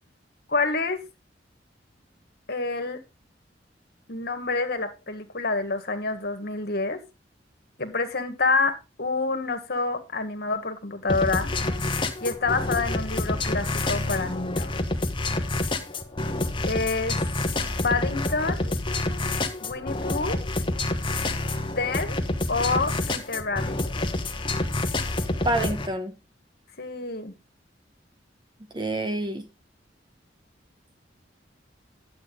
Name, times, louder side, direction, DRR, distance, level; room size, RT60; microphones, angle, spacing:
voice 1, 0.5-1.0 2.5-3.0 4.1-7.0 7.8-11.5 12.2-14.8 16.7-17.2 17.8-18.7 19.6-20.4 21.8-22.1 22.5-23.8 26.8-27.3, left 3 dB, 60° left, 1.8 m, -27 dB
sound 1, 11.1-25.9, left 2 dB, 25° left, 1.3 m, -28 dB
voice 2, 25.4-26.2 28.7-29.5, right 1 dB, 25° right, 1.0 m, -27 dB
11.5 x 8.1 x 3.8 m
head